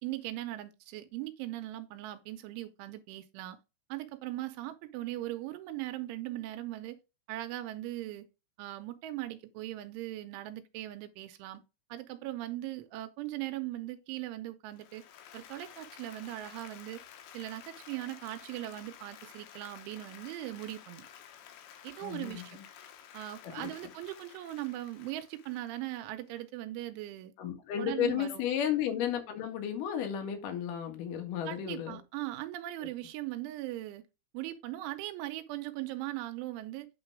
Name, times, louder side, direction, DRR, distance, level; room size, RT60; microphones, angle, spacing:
voice 1, 0.0-3.6 3.9-7.0 7.3-8.3 8.6-11.6 11.9-15.0 15.3-17.0 17.3-21.1 21.8-22.6 23.1-27.3 27.8-28.5 31.5-34.0 34.3-36.9, right 15 dB, 85° right, 3.0 m, -39 dB
Applause, 14.7-26.4, left 9 dB, 75° left, 2.9 m, -52 dB
voice 2, 22.0-22.6 23.6-23.7 27.4-32.0, left 9 dB, 60° left, 2.5 m, -33 dB
8.9 x 3.9 x 4.7 m
omnidirectional pair, 5.6 m